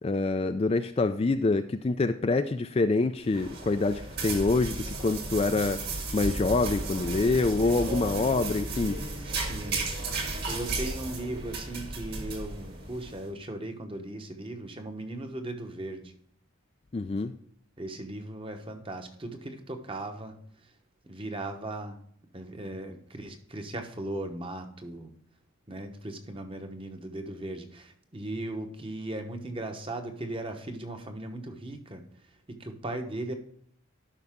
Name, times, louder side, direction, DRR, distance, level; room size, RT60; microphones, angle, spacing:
voice 1, 0.0-5.8 6.1-9.0 16.9-17.3, left 3 dB, 25° left, 9 dB, 0.3 m, -26 dB
sound 1, 3.2-13.2, right 2 dB, 45° right, 1.8 m, -34 dB
voice 2, 9.2-9.8 10.3-16.1 17.8-20.7 21.0-22.0 22.3-25.1 25.7-33.3, right 1 dB, 25° right, 6 dB, 1.0 m, -38 dB
12.0 x 5.6 x 3.6 m, 0.66 s
head